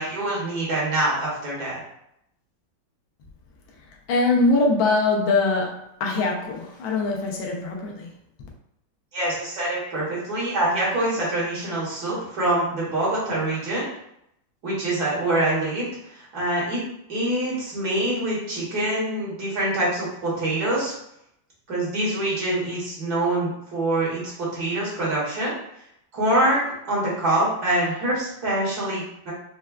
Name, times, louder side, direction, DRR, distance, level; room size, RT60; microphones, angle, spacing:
voice 1, 0.0-1.8 9.1-13.9 14.6-16.8 17.1-20.9 21.7-25.5 26.1-29.3, right 1 dB, 55° right, -7 dB, 1.7 m, -25 dB
voice 2, 4.1-8.1, left 3 dB, 85° left, 0 dB, 1.5 m, -22 dB
4.4 x 2.1 x 2.3 m, 0.78 s
omnidirectional pair, 2.1 m